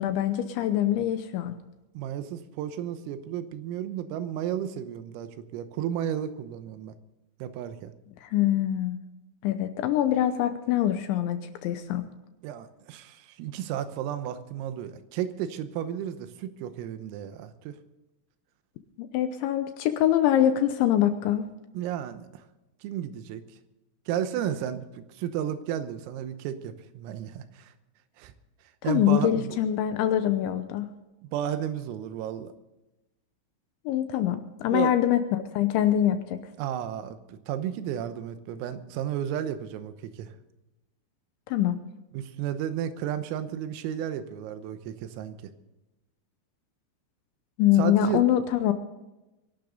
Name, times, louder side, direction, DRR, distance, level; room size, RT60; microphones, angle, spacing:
voice 1, 0.0-1.5 8.2-9.0 9.4-12.0 19.0-21.5 28.8-30.9 33.9-36.4 41.5-41.8 47.6-48.7, left 11 dB, 80° left, 9 dB, 2.9 m, -24 dB
voice 2, 2.0-7.0 7.4-7.9 12.4-17.8 21.8-22.4 22.8-23.4 24.1-27.7 28.2-28.3 28.8-29.6 31.3-32.5 34.7-34.9 36.6-40.3 42.1-45.4 47.8-48.3, right 10 dB, 85° right, 10 dB, 3.7 m, -33 dB
23.5 x 12.0 x 3.9 m, 1.0 s
omnidirectional pair, 6.0 m